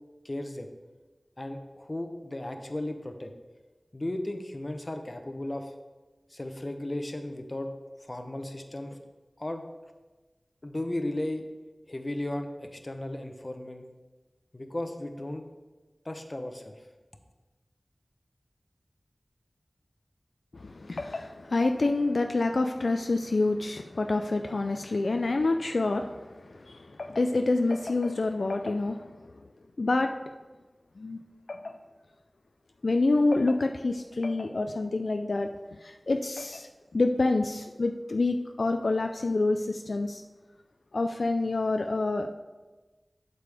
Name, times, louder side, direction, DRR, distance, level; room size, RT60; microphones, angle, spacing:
voice 1, 0.2-0.7 1.4-3.3 3.9-5.7 6.3-7.7 8.0-9.0 9.4-9.6 10.6-11.4 11.9-13.8 14.5-15.5 16.0-16.9, left 1 dB, 35° left, 6 dB, 0.8 m, -35 dB
voice 2, 20.5-29.0 29.8-30.1 31.0-31.2 31.5-31.7 32.8-35.5 35.8-36.7 36.9-40.2 40.9-42.3, left 2 dB, 75° left, 5 dB, 0.4 m, -27 dB
8.1 x 6.8 x 3.4 m, 1.2 s
wide cardioid pair, 60°, 0 cm